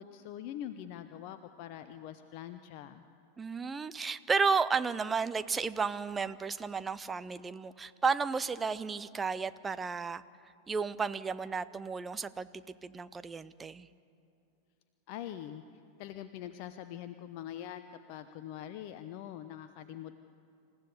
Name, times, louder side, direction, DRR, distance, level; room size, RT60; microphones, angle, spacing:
voice 1, 0.0-3.0 15.1-15.6 16.0-20.1, left 11 dB, 45° left, 10 dB, 0.7 m, -43 dB
voice 2, 3.4-10.2 10.7-13.9, right 5 dB, 15° right, 13 dB, 0.6 m, -33 dB
27.5 x 15.0 x 8.2 m, 2.6 s
figure-of-eight pair, 90°, 0 cm